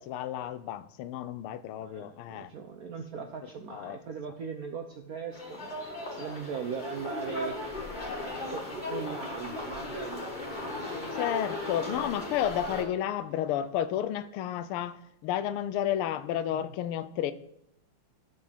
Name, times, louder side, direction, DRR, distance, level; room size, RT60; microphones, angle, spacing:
voice 1, 0.0-2.5 3.7-4.0 11.1-17.3, left 10 dB, 85° left, 1.5 m, -32 dB
voice 2, 1.8-7.5 8.5-11.4 11.9-12.3 16.5-16.7, right 6 dB, 75° right, 0.8 m, -40 dB
sound 1, 5.3-12.8, left 2 dB, 25° left, 1.5 m, -37 dB
11.0 x 6.2 x 4.4 m
omnidirectional pair, 2.4 m